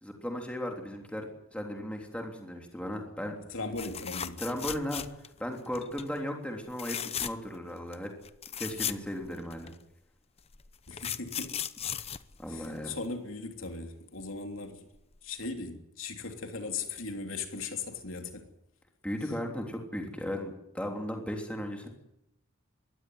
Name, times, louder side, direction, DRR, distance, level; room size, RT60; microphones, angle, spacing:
voice 1, 0.0-3.3 4.4-5.0 5.4-8.1 8.6-9.7 12.4-13.0 19.0-21.9, equal, 5° left, 3.3 m, -36 dB
voice 2, 3.5-4.4 10.9-11.5 12.5-14.8 15.2-18.4, left 4 dB, 70° left, 3.3 m, -38 dB
sound 1, 3.7-5.4 5.7-6.1 6.7-7.6 7.9-8.0 8.2-9.7 10.5-13.0 15.0-15.1 15.4-15.5, left 9 dB, 30° left, 0.8 m, -37 dB
22.5 x 16.5 x 9.5 m
head